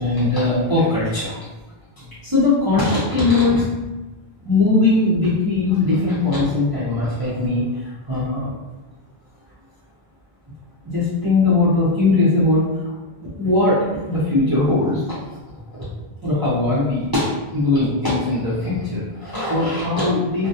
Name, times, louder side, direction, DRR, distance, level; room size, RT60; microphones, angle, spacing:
voice 1, 0.0-1.4 2.0-3.6 4.4-7.6 8.1-8.5 10.8-12.6 13.2-15.0 15.8-15.9 16.2-20.5, left 2 dB, 25° right, -12 dB, 0.6 m, -20 dB
2.2 x 2.2 x 2.7 m, 1.1 s
omnidirectional pair, 1.0 m